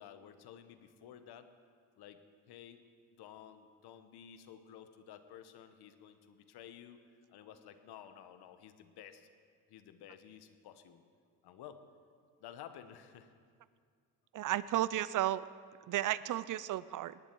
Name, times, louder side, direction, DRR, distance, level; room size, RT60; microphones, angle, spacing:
voice 1, 0.0-1.5 2.0-2.2 2.5-2.8 3.2-7.0 7.3-9.3 9.7-11.0 11.4-11.8 12.4-13.3, left 9 dB, 65° left, 10 dB, 1.1 m, -53 dB
voice 2, 14.3-15.5 15.9-17.2, right 13 dB, 50° right, 18 dB, 0.5 m, -33 dB
18.5 x 10.5 x 4.6 m, 2.1 s
supercardioid pair, 65°, 42 cm